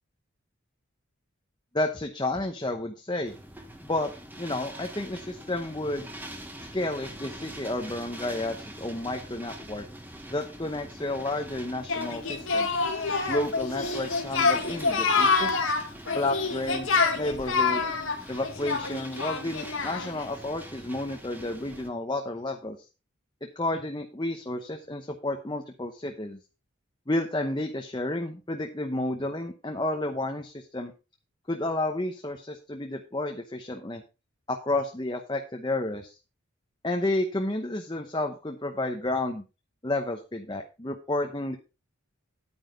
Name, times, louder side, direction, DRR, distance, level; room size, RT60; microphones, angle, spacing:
voice 1, 1.7-3.3 3.8-6.1 6.7-9.9 10.3-12.7 13.3-15.6 16.1-17.8 18.3-22.8 23.4-26.4 27.1-30.9 31.5-34.0 34.5-36.2 36.8-39.5 39.8-41.6, left 2 dB, 20° left, 3 dB, 0.9 m, -31 dB
sound 1, 3.2-21.9, right 1 dB, 10° right, 1.3 m, -44 dB
Singing, 11.9-20.2, left 4 dB, 80° left, 1.9 m, -27 dB
10.0 x 9.2 x 3.8 m, 0.30 s
head